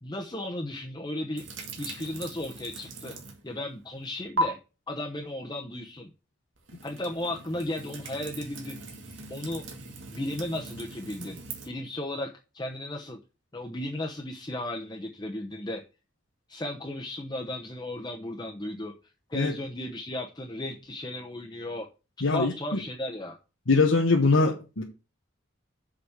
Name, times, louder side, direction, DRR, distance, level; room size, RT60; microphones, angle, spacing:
voice 1, 0.0-1.5 1.8-3.2 3.4-4.6 4.9-6.1 6.8-8.8 9.3-9.6 10.1-11.4 11.6-13.2 13.5-15.8 16.5-18.9 19.3-21.9 22.3-23.4, left 1 dB, 20° left, 1.0 m, -35 dB
sound 1, 1.4-3.5 3.8-4.4 6.6-11.7, right 2 dB, 80° right, 2.1 m, -38 dB
voice 2, 22.2-22.8 23.7-24.8, left 3 dB, 85° left, 1.4 m, -22 dB
7.2 x 5.2 x 6.5 m
head